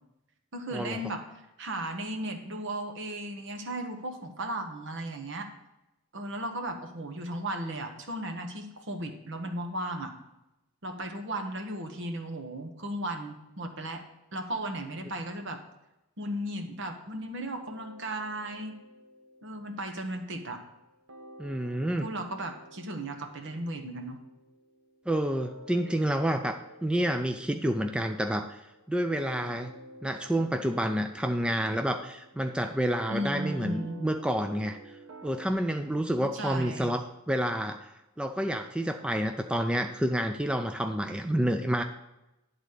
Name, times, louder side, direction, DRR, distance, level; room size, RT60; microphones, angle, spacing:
voice 1, 0.5-1.2 1.6-5.5 6.1-10.1 10.8-14.0 14.3-15.6 16.2-18.8 19.4-20.6 22.0-24.2 33.1-34.0 36.2-36.9, right 1 dB, 60° right, 6 dB, 1.1 m, -35 dB
sound 1, 17.6-20.8 21.1-35.5, right 2 dB, 90° right, 1.0 m, -50 dB
voice 2, 21.4-22.1 25.1-29.7 30.0-34.9 35.2-37.0 37.3-37.9 38.2-41.8, right 1 dB, 5° right, 6 dB, 0.3 m, -29 dB
11.0 x 4.1 x 6.5 m, 0.94 s
head